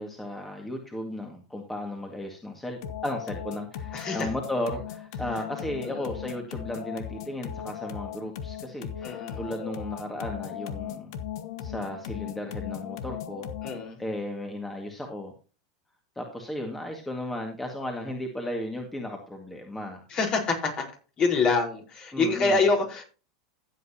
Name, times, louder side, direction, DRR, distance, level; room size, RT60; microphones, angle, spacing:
voice 1, 0.0-11.1 11.6-13.5 14.0-15.3 16.2-20.0 22.1-22.6, left 1 dB, 10° left, 2 dB, 2.0 m, -35 dB
sound 1, 2.8-13.9, left 9 dB, 70° left, 1.2 m, -37 dB
voice 2, 3.9-4.3 5.8-6.1 9.0-9.4 13.6-14.0 20.1-20.8 21.2-23.0, left 4 dB, 40° left, 2 dB, 4.5 m, -26 dB
14.5 x 8.2 x 2.9 m, 0.35 s
hypercardioid pair, 105°, 2 cm